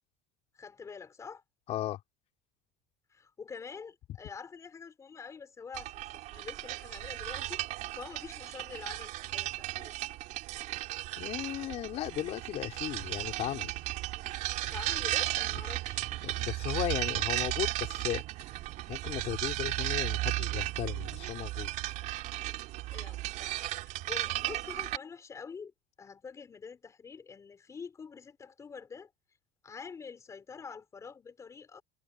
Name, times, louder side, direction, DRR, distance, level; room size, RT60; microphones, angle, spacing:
voice 1, 0.5-1.4 3.1-6.0 6.3-10.0 14.6-16.0 22.9-23.6 23.8-25.7 26.0-29.1 29.6-31.8, left 5 dB, 20° left, 4.7 m, -46 dB
voice 2, 1.7-2.0 11.2-13.7 16.2-18.2 18.9-21.7, left 13 dB, 45° left, 4.2 m, -36 dB
sound 1, 5.7-25.0, right 17 dB, 55° right, 4.0 m, -35 dB
cardioid pair, 160°, 16 cm